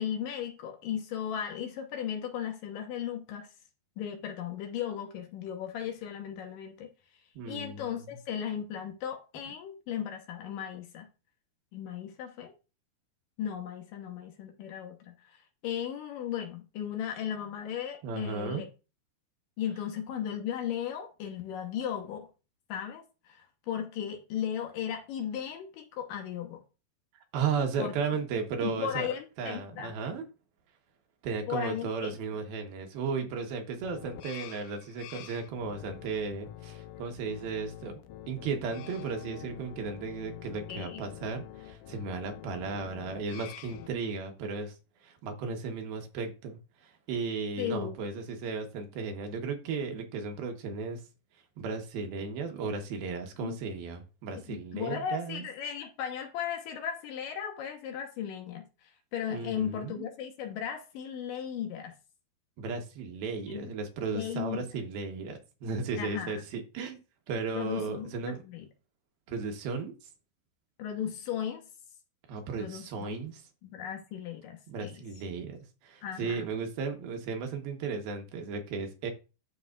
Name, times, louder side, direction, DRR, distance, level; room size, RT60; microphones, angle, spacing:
voice 1, 0.0-3.5 4.0-6.9 7.5-11.1 11.7-12.5 13.4-15.4 15.6-18.7 19.6-22.3 22.7-26.6 27.8-27.9 28.6-29.9 31.5-32.1 40.7-41.1 47.6-48.0 53.4-53.6 54.3-61.9 63.5-63.7 64.1-64.7 66.0-66.3 67.5-68.7 70.8-71.7 72.5-73.2 73.6-75.0 76.0-76.4, left 9 dB, 70° left, 2.5 m, -36 dB
voice 2, 7.4-8.0 18.0-18.6 27.3-29.1 29.4-30.2 31.2-38.0 38.3-44.7 45.0-51.0 51.6-55.4 59.3-60.0 62.6-67.0 67.3-68.4 69.3-69.9 72.3-73.4 74.7-75.6 75.8-79.1, right 5 dB, 75° right, 3.0 m, -35 dB
sound 1, 33.8-43.9, left 11 dB, 85° left, 1.8 m, -47 dB
13.0 x 4.9 x 2.4 m
omnidirectional pair, 4.4 m